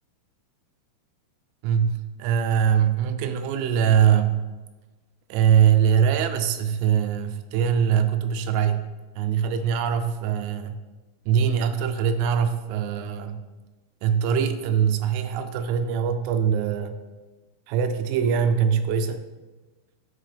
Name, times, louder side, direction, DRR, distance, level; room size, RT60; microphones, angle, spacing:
voice 1, 1.6-4.4 5.3-8.8 9.2-10.8 11.3-13.4 14.0-17.0 17.7-19.2, right 8 dB, 85° right, 8 dB, 2.9 m, -22 dB
9.7 x 4.3 x 3.3 m, 1.2 s
omnidirectional pair, 5.4 m